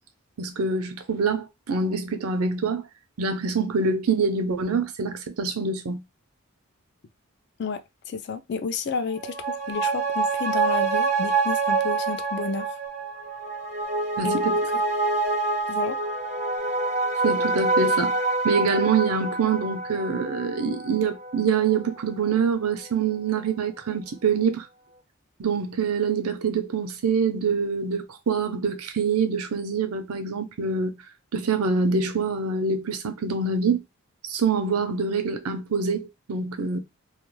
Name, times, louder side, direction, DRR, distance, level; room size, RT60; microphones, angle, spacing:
voice 1, 0.4-2.8 3.2-6.0 14.2-14.6 17.2-24.7 25.4-31.0 31.3-33.8 34.3-36.8, right 5 dB, 90° right, 0.6 m, -25 dB
voice 2, 7.6-12.7 14.2-14.4 15.7-16.0, left 5 dB, 50° left, 0.3 m, -31 dB
sound 1, 9.1-22.0 22.3-22.4, right 3 dB, 30° right, 0.4 m, -26 dB
2.3 x 2.2 x 3.0 m
head